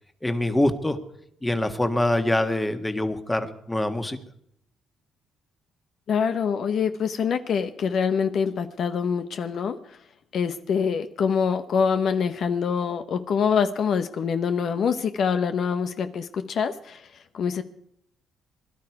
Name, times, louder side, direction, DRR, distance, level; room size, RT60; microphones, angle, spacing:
voice 1, 0.2-1.0 1.4-4.2, left 1 dB, 10° left, 8 dB, 1.6 m, -24 dB
voice 2, 6.1-9.8 10.3-17.0 17.3-17.6, left 6 dB, 60° left, 9 dB, 0.9 m, -25 dB
21.5 x 12.0 x 4.8 m, 0.71 s
cardioid pair, 90°, 0 cm